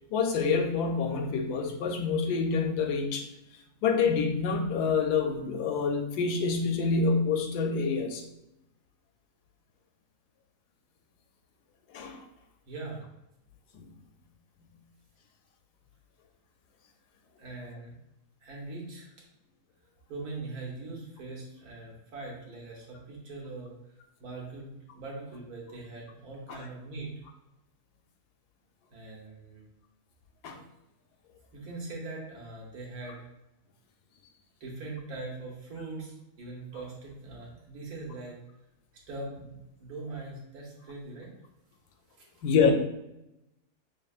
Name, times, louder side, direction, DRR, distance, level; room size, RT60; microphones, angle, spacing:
voice 1, 0.1-3.3 3.8-8.2 11.9-12.2 13.7-13.8 26.5-26.6 30.4-30.6 42.4-42.7, left 5 dB, 75° left, 4 dB, 1.1 m, -27 dB
voice 2, 12.7-13.0 17.4-17.9 18.4-19.1 20.1-23.7 24.2-27.2 28.9-29.6 31.5-33.2 34.6-38.4 39.1-41.3 42.2-42.3, right 3 dB, 65° right, -3 dB, 1.5 m, -41 dB
6.1 x 2.2 x 2.3 m, 0.88 s
omnidirectional pair, 1.7 m